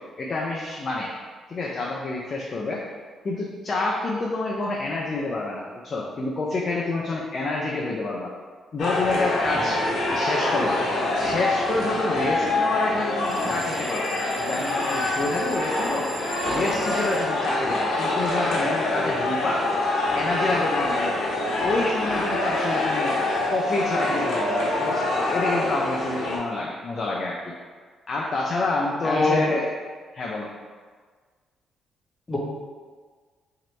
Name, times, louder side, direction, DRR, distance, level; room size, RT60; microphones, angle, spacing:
voice 1, 0.2-1.1 1.5-2.8 3.2-8.3 8.7-9.8 10.1-10.8 11.2-14.1 14.4-19.6 20.1-21.3 21.6-23.1 23.5-27.5 28.1-29.7 30.1-30.5, left 2 dB, 40° left, -3 dB, 0.5 m, -28 dB
sound 1, 8.8-26.4, left 2 dB, 70° left, 0.9 m, -25 dB
sound 2, 13.2-17.2, right 2 dB, 40° right, 0.8 m, -40 dB
voice 2, 29.0-29.5 32.3-32.4, left 2 dB, 20° left, -3 dB, 0.9 m, -22 dB
3.0 x 2.9 x 4.3 m, 1.5 s
cardioid pair, 90°, 0 cm